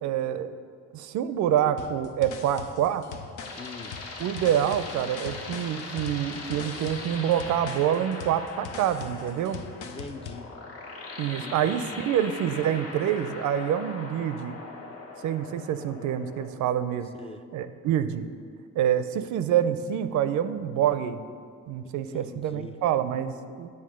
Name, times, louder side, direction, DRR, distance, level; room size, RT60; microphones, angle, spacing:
voice 1, 0.0-0.5 0.9-3.0 4.2-9.6 11.2-14.6 15.2-17.1 17.5-18.3 18.8-21.2 21.7-23.7, right 10 dB, 75° right, 12 dB, 0.5 m, -26 dB
sound 1, 1.8-10.5, left 6 dB, 85° left, 0.7 m, -42 dB
sound 2, 3.0-16.5, left 3 dB, 50° left, 1.1 m, -40 dB
voice 2, 3.6-4.0 9.8-10.5 11.4-11.8 17.2-17.4 22.1-22.8, left 4 dB, 20° left, 8 dB, 0.3 m, -42 dB
8.7 x 3.6 x 6.3 m, 2.1 s
cardioid pair, 90°, 30 cm